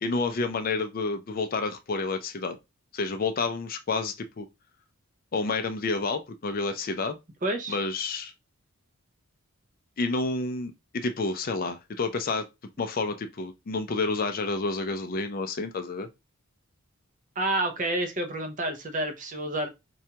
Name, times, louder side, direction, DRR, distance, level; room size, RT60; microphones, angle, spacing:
voice 1, 0.0-2.6 2.9-4.5 5.3-7.2 7.7-8.3 10.0-12.4 12.8-16.1, left 3 dB, 40° left, 0.4 m, -29 dB
voice 2, 7.4-7.8 17.4-19.7, right 1 dB, 35° right, 0.6 m, -29 dB
4.3 x 2.3 x 2.8 m
head